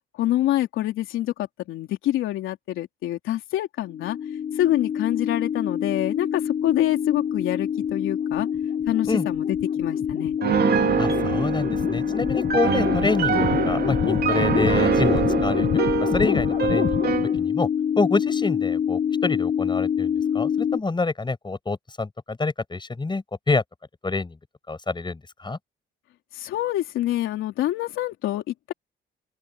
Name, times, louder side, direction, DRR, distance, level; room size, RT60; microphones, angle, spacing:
voice 1, 0.2-4.2 4.5-8.5 8.9-10.4 26.3-28.7, left 14 dB, 90° left, 3.5 m, -26 dB
sound 1, 3.9-20.8, left 8 dB, 45° left, 1.0 m, -25 dB
Piano, 10.4-17.3, right 7 dB, 55° right, 2.4 m, -25 dB
voice 2, 11.0-15.7 16.0-17.7 18.0-23.6 24.0-24.4 24.7-25.6, left 3 dB, 25° left, 7.4 m, -27 dB
open air
cardioid pair, 90°, 20 cm